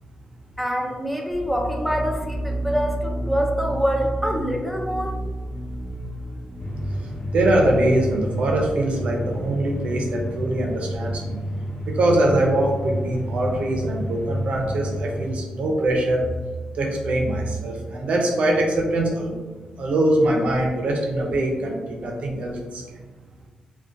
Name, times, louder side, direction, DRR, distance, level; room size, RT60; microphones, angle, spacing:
voice 1, 0.6-5.2, equal, ahead, 1 dB, 0.3 m, -25 dB
sound 1, 1.3-9.0, right 1 dB, 35° left, 1.1 m, -32 dB
sound 2, 6.6-15.3, equal, 55° left, 0.7 m, -30 dB
voice 2, 7.3-11.4 11.9-16.2 16.8-19.3 19.8-22.8, right 1 dB, 60° right, 0 dB, 0.5 m, -22 dB
2.4 x 2.1 x 2.5 m, 1.3 s
wide cardioid pair, 145°, 2 cm